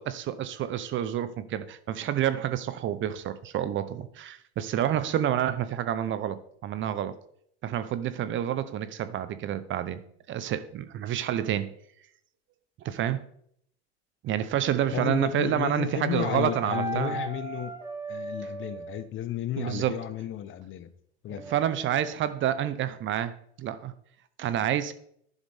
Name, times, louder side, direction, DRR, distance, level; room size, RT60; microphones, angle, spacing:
voice 1, 0.0-7.2 7.6-10.0 10.3-11.7 12.8-13.3 14.2-17.2 19.6-20.0 21.5-23.9 24.4-24.9, right 10 dB, 35° right, 0.9 m, -29 dB
voice 2, 14.9-17.8 18.1-20.9 21.2-21.4, left 11 dB, 35° left, 1.0 m, -33 dB
sound 1, 16.2-19.1 21.3-22.1, right 4 dB, 10° right, 1.9 m, -37 dB
11.0 x 11.0 x 3.6 m
hypercardioid pair, 85°, 33 cm